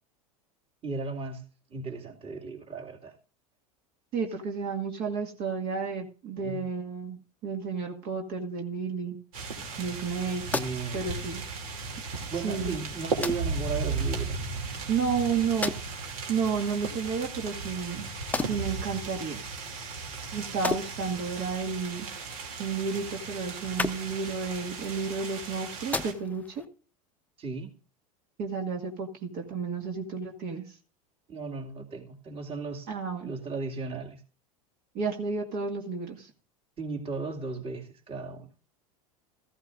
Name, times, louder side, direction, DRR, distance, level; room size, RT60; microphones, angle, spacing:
voice 1, 0.8-1.4 1.7-3.1 6.4-6.6 10.5-11.0 12.3-14.4 27.4-27.7 31.3-32.9 33.2-34.2 36.8-38.5, right 4 dB, 30° right, 2.4 m, -35 dB
voice 2, 4.1-9.2 9.8-10.4 10.9-11.4 12.4-12.8 14.9-18.1 18.4-19.4 20.3-22.1 22.6-26.6 28.4-30.8 32.9-33.3 34.9-36.3, right 5 dB, 55° right, 2.0 m, -32 dB
sound 1, 9.3-26.1, right 4 dB, 75° right, 2.9 m, -36 dB
sound 2, 10.0-26.6, left 3 dB, 10° left, 0.7 m, -39 dB
14.5 x 14.0 x 2.6 m
hypercardioid pair, 100°, 19 cm